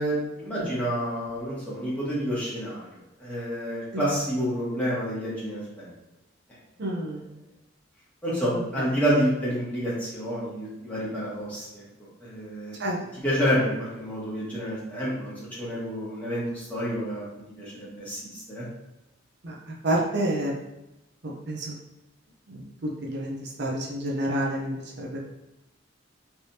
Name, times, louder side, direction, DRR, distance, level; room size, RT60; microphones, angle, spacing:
voice 1, 0.0-2.8 3.2-5.9 8.2-11.8 12.2-12.8 13.1-18.6, equal, 10° left, -9 dB, 1.5 m, -29 dB
voice 2, 6.8-7.2 12.8-13.0 19.4-19.5 19.8-20.5 21.5-21.6 23.1-23.3 23.6-24.7 25.0-25.2, right 1 dB, 60° right, -3 dB, 0.7 m, -27 dB
3.3 x 3.3 x 2.8 m, 0.95 s
head